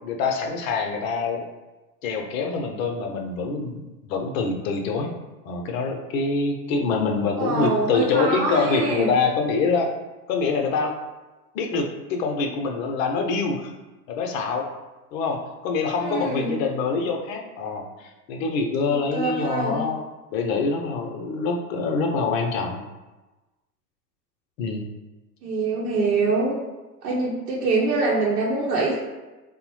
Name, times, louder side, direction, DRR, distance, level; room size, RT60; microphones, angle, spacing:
voice 1, 0.0-1.5 2.0-5.1 5.4-9.9 10.3-11.0 11.5-13.7 14.1-14.7 15.1-20.0 20.3-22.8 24.6-24.8, left 4 dB, 55° left, 3 dB, 0.7 m, -25 dB
voice 2, 7.4-9.1 16.0-16.6 18.9-19.8 25.4-26.6 27.0-29.0, right 3 dB, 75° right, -5 dB, 0.8 m, -24 dB
3.3 x 2.1 x 3.1 m, 1.1 s
hypercardioid pair, 90°, 49 cm